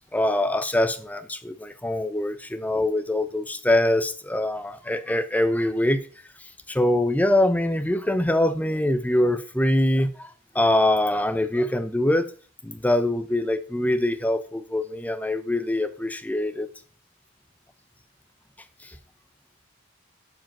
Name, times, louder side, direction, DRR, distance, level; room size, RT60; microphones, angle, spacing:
voice 1, 0.1-6.0 6.7-10.3 10.5-12.3 12.6-16.7 18.8-19.0, left 1 dB, 5° left, 0.7 m, -23 dB
11.5 x 5.1 x 5.9 m
head